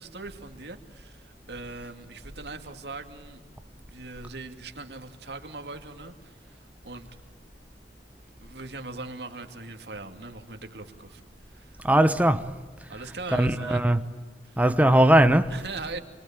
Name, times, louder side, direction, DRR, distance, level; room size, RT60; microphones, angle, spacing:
voice 1, 0.0-3.4 3.9-7.1 8.4-11.2 11.5-11.8 12.9-13.8 14.4-14.6 15.5-16.0, right 3 dB, 70° right, 2.5 m, -40 dB
voice 2, 11.8-12.5 13.3-14.0 14.6-15.5, right 1 dB, 10° right, 0.9 m, -19 dB
27.5 x 23.5 x 8.9 m
head